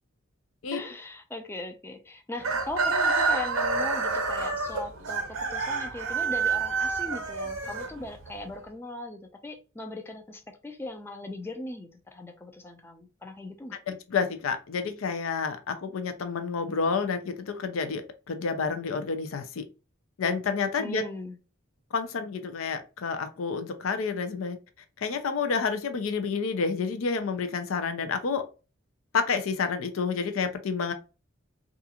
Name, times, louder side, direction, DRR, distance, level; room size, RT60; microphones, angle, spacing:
voice 1, 0.7-13.8 20.8-21.4, left 2 dB, 10° left, 0.4 m, -39 dB
Chicken rooster, 2.4-8.4, right 4 dB, 80° right, 0.7 m, -28 dB
voice 2, 13.9-19.6 20.2-21.0 21.9-24.6 25.0-28.4 29.1-30.9, left 5 dB, 90° left, 0.5 m, -29 dB
2.4 x 2.4 x 2.7 m
head